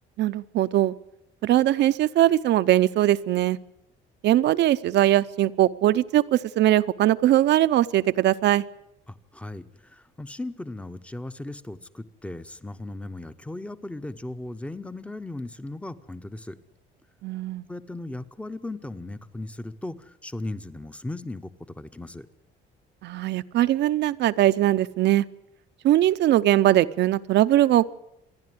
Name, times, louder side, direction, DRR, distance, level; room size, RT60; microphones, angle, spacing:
voice 1, 0.2-0.9 1.4-3.6 4.2-8.6 17.2-17.6 23.0-25.3 25.8-27.8, right 13 dB, 60° right, 12 dB, 0.7 m, -21 dB
voice 2, 9.1-16.6 17.7-22.3, left 2 dB, 5° left, 13 dB, 0.8 m, -37 dB
26.5 x 10.5 x 9.4 m, 0.85 s
cardioid pair, 135°, 20 cm